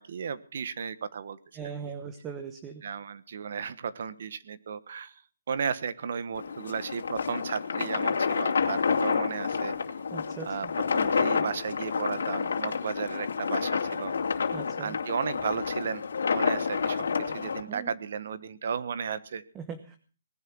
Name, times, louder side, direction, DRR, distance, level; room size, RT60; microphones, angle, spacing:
voice 1, 0.0-1.4 2.8-5.1 5.5-9.7 10.5-10.7 10.9-14.1 14.8-16.0 16.3-19.4, right 6 dB, 55° right, 15 dB, 1.3 m, -34 dB
voice 2, 1.5-2.8 10.1-10.7 14.5-15.0 17.7-17.9 19.5-20.0, right 6 dB, 15° right, 8 dB, 1.2 m, -40 dB
sound 1, 6.3-17.6, left 5 dB, 80° left, 2.7 m, -29 dB
19.0 x 11.0 x 6.2 m, 0.38 s
hypercardioid pair, 170°, 0 cm